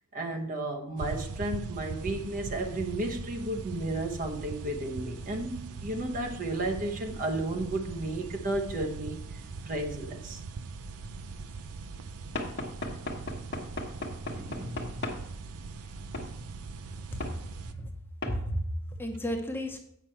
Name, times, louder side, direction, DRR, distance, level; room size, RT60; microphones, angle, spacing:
voice 1, 0.1-9.2 9.6-10.4 14.3-15.0, right 2 dB, 40° right, 1.0 m, -33 dB
sound 1, 1.0-17.7, right 4 dB, 85° right, 0.6 m, -41 dB
Knock / Wood, 12.4-15.2 16.1-16.3 17.2-17.4 18.2-18.4, left 2 dB, 50° left, 1.2 m, -36 dB
voice 2, 18.3-19.8, equal, 10° left, 0.9 m, -33 dB
8.2 x 5.9 x 4.4 m
head